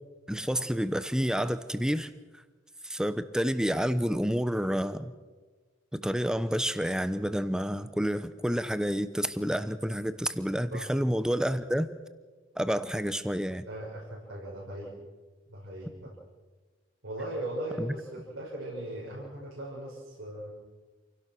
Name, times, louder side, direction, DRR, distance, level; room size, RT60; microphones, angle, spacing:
voice 1, 0.3-2.1 2.8-5.1 5.9-11.9 12.6-13.7 17.8-17.9, equal, 5° right, 12 dB, 0.9 m, -29 dB
voice 2, 13.7-14.9 15.5-16.2 17.0-20.5, right 1 dB, 90° right, -5 dB, 5.9 m, -38 dB
27.5 x 17.0 x 6.2 m, 1.3 s
head